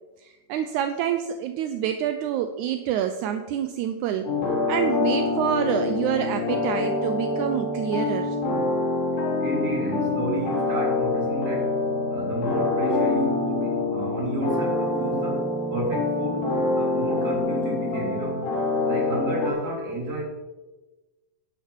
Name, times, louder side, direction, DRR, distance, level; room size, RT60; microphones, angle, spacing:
voice 1, 0.2-4.3 4.7-8.4, right 9 dB, 80° right, 8 dB, 2.0 m, -27 dB
sound 1, 4.2-19.5, left 3 dB, 75° left, 4.4 m, -25 dB
voice 2, 9.4-11.7 12.1-18.4 18.9-20.2, right 2 dB, 30° right, -2 dB, 3.5 m, -31 dB
11.0 x 10.5 x 4.7 m, 1.2 s
omnidirectional pair, 3.7 m